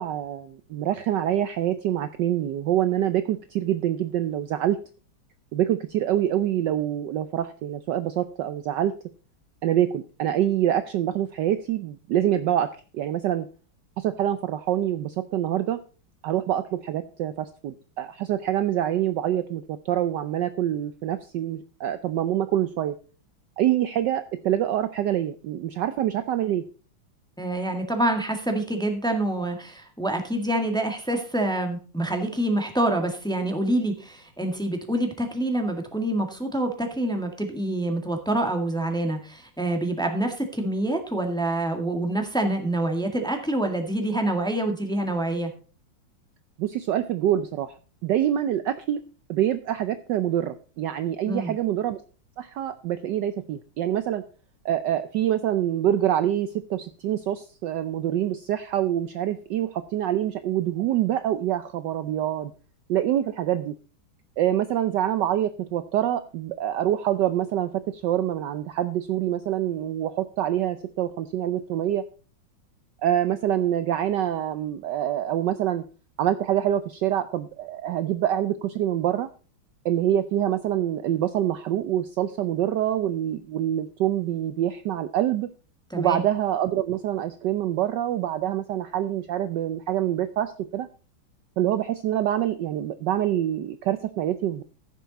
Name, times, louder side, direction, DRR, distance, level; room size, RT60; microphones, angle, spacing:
voice 1, 0.0-4.8 5.5-8.9 9.6-13.5 14.0-15.8 16.2-23.0 23.6-26.6 46.6-47.8 48.0-49.0 49.3-52.0 52.4-54.2 54.6-62.5 62.9-63.7 64.4-72.0 73.0-75.8 76.2-79.3 79.8-85.5 86.0-90.9 91.6-94.6, right 11 dB, 70° right, 11 dB, 1.1 m, -25 dB
voice 2, 27.4-45.5 51.2-51.5 85.9-86.2, right 1 dB, ahead, 4 dB, 1.5 m, -26 dB
15.0 x 7.0 x 4.0 m, 0.37 s
omnidirectional pair, 2.3 m